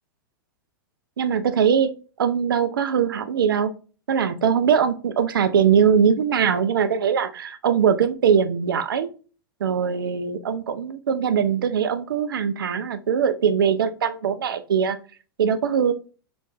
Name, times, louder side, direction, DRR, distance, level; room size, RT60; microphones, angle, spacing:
voice 1, 1.2-1.9 2.2-3.7 4.1-9.1 9.6-15.0 15.4-15.9, right 7 dB, 70° right, 11 dB, 0.4 m, -21 dB
3.2 x 3.0 x 2.5 m, 0.37 s
figure-of-eight pair, 95°, 12 cm